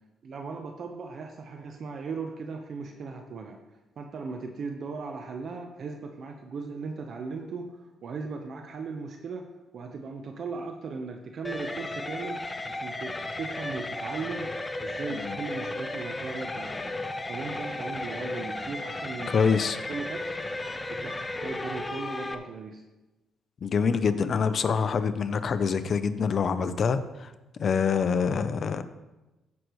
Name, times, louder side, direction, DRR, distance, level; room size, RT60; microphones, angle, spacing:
voice 1, 0.2-3.6 4.0-14.5 14.8-16.9 17.3-19.3 19.6-20.4 20.9-22.8, right 4 dB, 55° right, 4 dB, 0.9 m, -38 dB
sound 1, 11.4-22.3, left 2 dB, 15° left, 0.8 m, -34 dB
voice 2, 19.3-19.8 23.6-27.3 27.6-28.8, left 6 dB, 50° left, 11 dB, 0.6 m, -25 dB
15.5 x 6.5 x 3.1 m, 1.1 s
cardioid pair, 90°, 0 cm